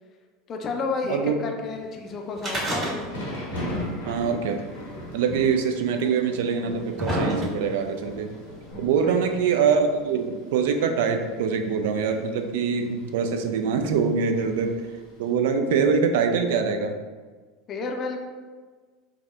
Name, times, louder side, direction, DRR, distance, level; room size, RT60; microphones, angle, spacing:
voice 1, 0.5-2.9 9.0-9.2 17.7-18.2, left 4 dB, 40° left, 2 dB, 0.5 m, -31 dB
Thunder / Rain, 2.4-15.4, equal, 80° left, 0.9 m, -40 dB
sound 1, 2.4-3.4 3.7-3.8 4.7-4.8 5.7-5.8 6.5-7.9 8.7-8.8, equal, 30° right, 1.5 m, -28 dB
voice 2, 4.0-4.6 5.1-8.3 8.8-14.8 15.2-17.0, right 6 dB, 65° right, 5 dB, 0.3 m, -24 dB
4.7 x 2.1 x 2.3 m, 1.4 s
hypercardioid pair, 80°, 0 cm